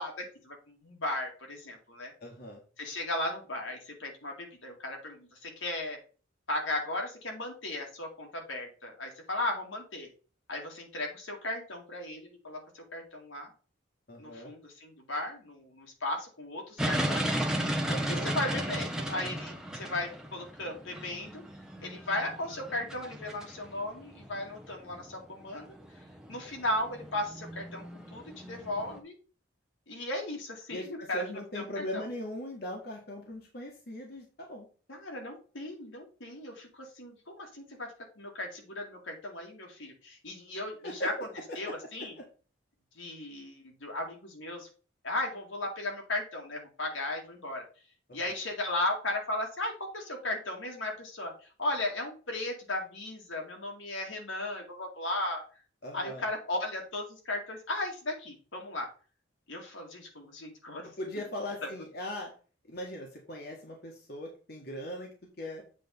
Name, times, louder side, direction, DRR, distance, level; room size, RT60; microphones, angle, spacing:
voice 1, 0.0-2.1 2.8-6.0 6.5-10.1 10.5-13.5 14.2-17.3 18.1-21.4 21.8-25.8 26.3-29.1 29.9-31.2 31.5-32.0 34.9-41.1 41.6-42.1 42.9-44.7 45.0-47.7 48.1-55.4 55.9-58.9 59.5-60.9 61.1-61.2 61.6-61.7, left 1 dB, 80° left, 1 dB, 2.3 m, -36 dB
voice 2, 2.2-2.6 14.1-14.5 17.9-18.3 30.7-34.7 40.8-41.3 41.6-42.3 48.1-48.2 55.8-56.2 60.8-62.3 62.7-65.1 65.4-65.6, equal, 50° left, 0 dB, 1.5 m, -39 dB
sound 1, 16.8-29.0, equal, 5° right, 0.8 m, -35 dB
7.7 x 3.6 x 5.3 m, 0.37 s
head